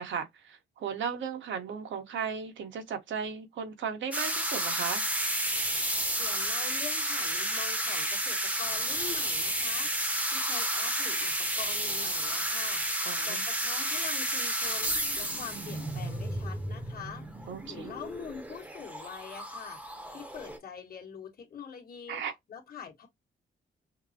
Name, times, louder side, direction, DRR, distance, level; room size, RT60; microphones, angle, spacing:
voice 1, 0.0-5.0 13.0-13.4 17.5-17.9 22.1-22.3, right 7 dB, 80° right, 1.1 m, -36 dB
sound 1, 4.1-20.6, right 1 dB, 5° right, 0.8 m, -31 dB
voice 2, 6.2-22.2 22.5-23.1, left 7 dB, 50° left, 1.7 m, -44 dB
5.7 x 2.0 x 2.8 m
cardioid pair, 130°, 19 cm